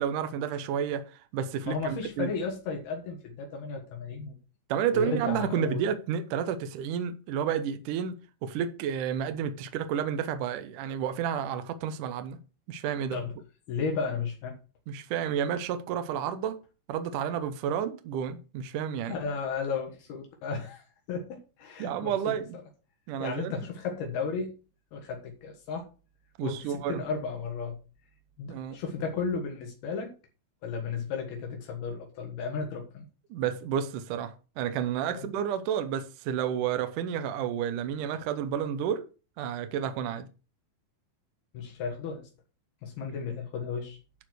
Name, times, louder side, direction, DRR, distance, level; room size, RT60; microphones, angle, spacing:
voice 1, 0.0-2.3 4.7-12.4 12.7-13.2 14.9-16.6 16.9-19.2 21.8-22.6 23.1-23.5 26.4-27.0 28.5-28.8 33.3-39.1 39.4-40.3, right 8 dB, 75° right, 2.0 m, -31 dB
voice 2, 1.6-4.4 4.9-5.8 13.1-13.3 13.7-14.6 19.1-22.4 23.2-24.5 24.9-25.9 26.4-27.8 28.4-30.1 30.6-33.1 35.1-35.3 41.5-42.3 42.8-44.0, left 5 dB, 75° left, 3.5 m, -34 dB
11.0 x 4.5 x 6.2 m
omnidirectional pair, 4.5 m